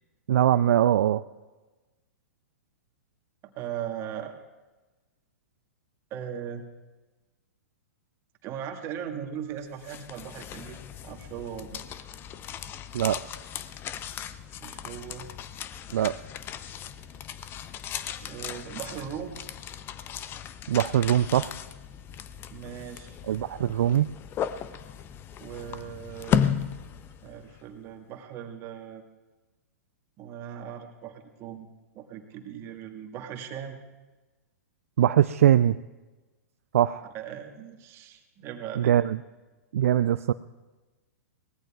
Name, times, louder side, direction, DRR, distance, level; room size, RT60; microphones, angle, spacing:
voice 1, 0.3-1.2 12.9-13.2 15.9-16.1 20.7-21.5 23.3-24.1 35.0-35.8 36.7-37.1 38.8-39.2 39.7-40.3, right 11 dB, 60° right, 13 dB, 0.4 m, -22 dB
voice 2, 3.6-4.3 6.1-6.6 8.4-11.8 14.6-15.3 18.2-19.4 22.5-23.2 25.4-26.6 27.2-29.0 30.2-31.7 31.9-33.8 37.1-38.9, right 9 dB, 35° right, 4 dB, 1.8 m, -39 dB
sound 1, 9.6-27.6, left 8 dB, 25° left, 0.6 m, -35 dB
23.5 x 19.0 x 2.4 m, 1.2 s
figure-of-eight pair, 110°, 8 cm